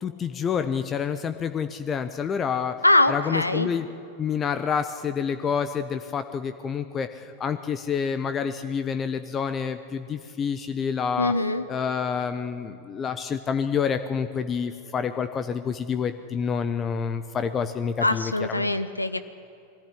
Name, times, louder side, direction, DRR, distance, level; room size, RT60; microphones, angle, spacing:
voice 1, 0.0-2.8 3.1-3.9 4.2-11.3 11.7-18.7, left 6 dB, 25° left, 10 dB, 0.8 m, -28 dB
voice 2, 2.8-3.7 11.2-11.7 18.0-19.3, left 2 dB, 85° left, 11 dB, 0.7 m, -23 dB
21.5 x 15.0 x 9.9 m, 2.7 s
figure-of-eight pair, 90°, 0 cm